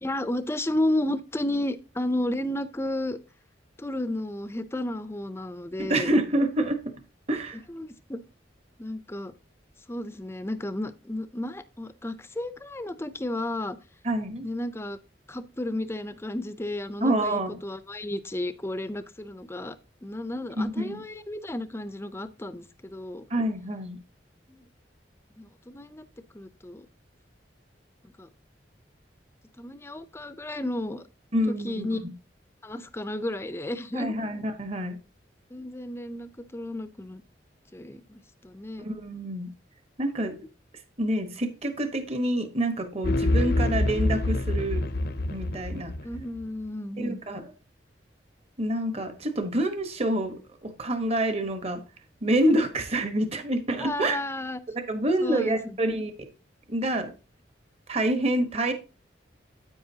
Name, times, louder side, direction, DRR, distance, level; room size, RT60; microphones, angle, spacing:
voice 1, 0.0-3.2 3.8-6.1 7.7-8.2 8.8-9.3 9.9-13.8 14.4-15.0 15.3-19.8 20.0-23.2 24.5-24.7 25.4-26.0 26.3-26.9 28.0-28.3 29.6-31.0 31.5-32.0 32.6-34.1 35.5-37.2 37.7-38.9 46.0-47.2 53.8-54.6 55.2-56.0, left 1 dB, 15° left, 14 dB, 0.5 m, -32 dB
voice 2, 5.8-6.9 7.3-7.6 14.0-14.5 17.0-17.6 20.6-21.0 23.3-24.0 31.3-32.1 33.9-35.0 38.8-39.5 40.0-40.4 41.0-44.8 45.3-45.9 47.0-47.5 48.6-51.8 52.2-54.2 54.9-56.3 56.7-57.1 57.9-58.7, right 1 dB, 35° right, 8 dB, 1.1 m, -27 dB
sound 1, 43.0-46.4, left 2 dB, 60° left, 0.6 m, -26 dB
9.6 x 8.6 x 2.8 m, 0.33 s
head